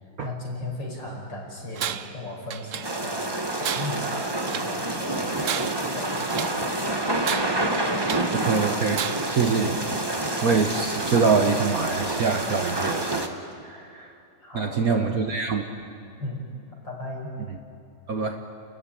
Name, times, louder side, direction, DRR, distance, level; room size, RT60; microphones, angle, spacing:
voice 1, 0.2-7.2 14.4-15.1 16.2-17.4, left 1 dB, 60° left, -2 dB, 5.8 m, -37 dB
Tools, 1.8-2.2 2.5-3.2 3.6-4.8 5.3-6.7 7.2-8.4 8.9-9.4, right 9 dB, 80° right, 0.7 m, -33 dB
sound 1, 2.8-13.3, right 2 dB, 15° right, 1.0 m, -28 dB
voice 2, 8.3-9.8 10.4-13.3 13.6-14.1 14.5-15.6 18.1-18.4, right 5 dB, 50° right, 5 dB, 1.4 m, -24 dB
30.0 x 14.0 x 9.9 m, 2.5 s
omnidirectional pair, 2.3 m